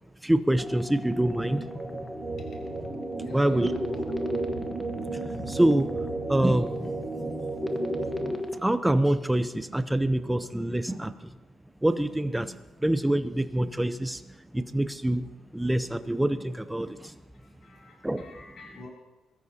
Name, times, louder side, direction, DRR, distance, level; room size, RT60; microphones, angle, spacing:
voice 1, 0.2-1.7 3.3-3.7 5.3-5.9 6.3-7.0 8.6-11.3 11.8-14.2 14.5-17.2 18.0-18.3, right 1 dB, 5° right, 11 dB, 0.7 m, -26 dB
sound 1, 0.6-8.6, left 1 dB, 15° left, 1.2 m, -36 dB
sound 2, 1.0-8.3, right 3 dB, 30° right, 5.4 m, -34 dB
voice 2, 2.4-2.9 3.2-4.4 17.3-18.9, left 3 dB, 60° left, -1 dB, 3.1 m, -47 dB
22.5 x 13.5 x 2.9 m, 1.1 s
cardioid pair, 100°, 0 cm